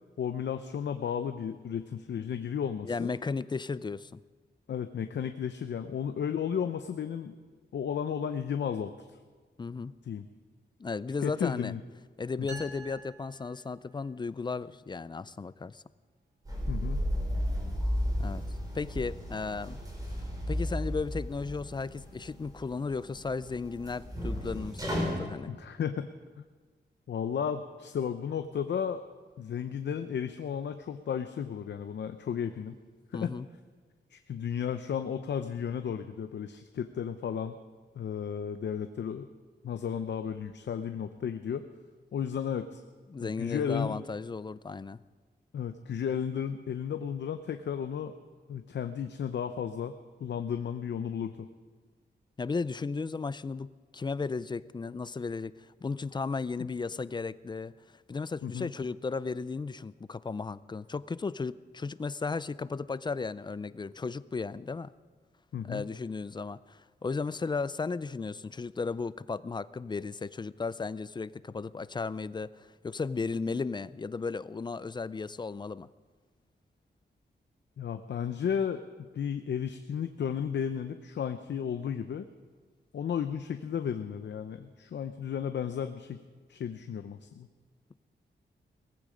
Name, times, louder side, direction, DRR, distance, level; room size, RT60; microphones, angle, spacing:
voice 1, 0.2-3.1 4.7-7.3 7.7-8.9 10.1-10.2 11.2-11.8 12.5-12.6 16.7-17.0 25.5-26.4 27.1-29.0 29.4-32.8 33.2-33.3 34.1-37.6 38.0-39.3 39.6-41.7 42.1-42.8 43.2-44.0 45.5-48.1 48.5-50.0 50.2-51.5 56.6-56.7 58.4-58.7 65.5-65.9 77.8-78.8 79.1-82.3 82.9-86.2 86.5-87.5, left 8 dB, 75° left, 8 dB, 0.7 m, -33 dB
voice 2, 2.8-4.2 9.6-9.9 10.8-11.7 12.2-15.8 18.2-18.4 18.7-19.8 20.5-25.5 33.1-33.5 43.1-45.0 52.4-53.7 53.9-64.9 65.6-75.9, left 4 dB, 25° left, 17 dB, 0.4 m, -35 dB
sound 1, 12.5-14.2, right 2 dB, 80° right, 2.9 m, -48 dB
sound 2, 16.5-25.2, equal, 20° right, 4.3 m, -34 dB
18.5 x 15.0 x 5.1 m, 1.5 s
wide cardioid pair, 135°, 18 cm